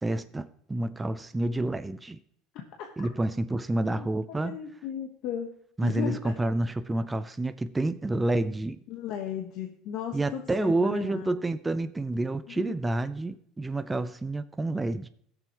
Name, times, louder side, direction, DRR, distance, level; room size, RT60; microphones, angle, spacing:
voice 1, 0.0-2.2 3.0-4.6 5.8-8.8 10.1-15.1, right 2 dB, 10° right, 0.4 m, -29 dB
voice 2, 4.4-5.5 5.8-6.3 8.9-11.3 12.5-12.8, left 9 dB, 55° left, 1.1 m, -35 dB
17.5 x 6.9 x 3.0 m
cardioid pair, 145°, 0 cm